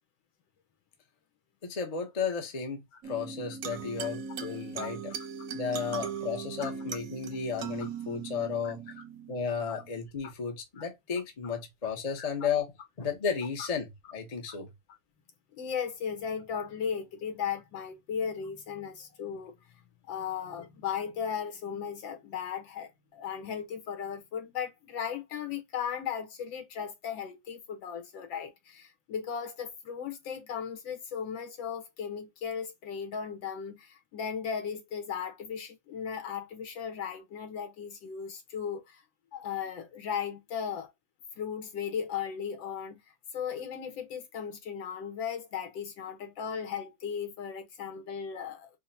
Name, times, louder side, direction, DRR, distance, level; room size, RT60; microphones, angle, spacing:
voice 1, 1.6-5.1 5.5-8.9 9.3-14.7, left 6 dB, 50° left, 0.4 m, -34 dB
sound 1, 3.0-10.0, right 7 dB, 65° right, 0.9 m, -39 dB
voice 2, 8.4-8.7 9.7-9.8 12.2-12.3 13.6-13.7 15.6-19.6 20.1-39.0 39.3-40.9 41.4-43.0 43.3-48.7, left 7 dB, 75° left, 1.8 m, -36 dB
4.7 x 2.1 x 2.7 m
omnidirectional pair, 2.1 m